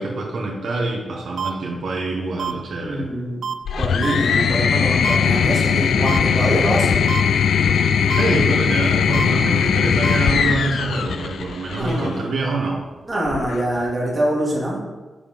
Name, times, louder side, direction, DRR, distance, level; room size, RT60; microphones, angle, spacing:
voice 1, 0.0-3.1 8.1-12.8, right 3 dB, 75° right, -2 dB, 1.4 m, -25 dB
sound 1, 1.4-1.5 2.4-2.5 3.4-3.5 4.0-4.2 5.0-5.2 6.1-6.2 7.1-7.2 8.1-8.2 9.1-9.3 10.0-10.2, right 7 dB, 55° right, 0.5 m, -27 dB
voice 2, 2.8-3.4 3.8-7.0 11.7-12.3 13.1-14.8, right 1 dB, 20° right, -4 dB, 2.1 m, -24 dB
sound 2, 3.7-12.1 13.3-13.9, left 7 dB, 80° left, 0.4 m, -19 dB
7.0 x 5.7 x 5.2 m, 1.2 s
wide cardioid pair, 175°, 0 cm